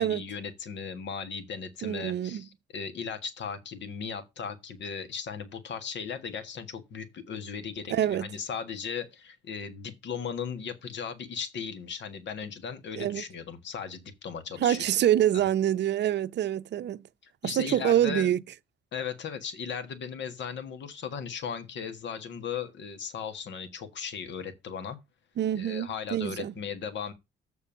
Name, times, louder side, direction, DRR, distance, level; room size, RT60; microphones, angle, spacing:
voice 1, 0.0-14.9 15.3-15.4 17.2-18.3 18.9-25.0 25.5-27.1, left 6 dB, 65° left, 1.6 m, -37 dB
voice 2, 1.8-2.4 7.9-8.3 13.0-13.2 14.6-17.0 17.4-18.4 25.4-26.5, right 11 dB, 60° right, 0.6 m, -26 dB
7.2 x 4.5 x 6.9 m
cardioid pair, 90°, 20 cm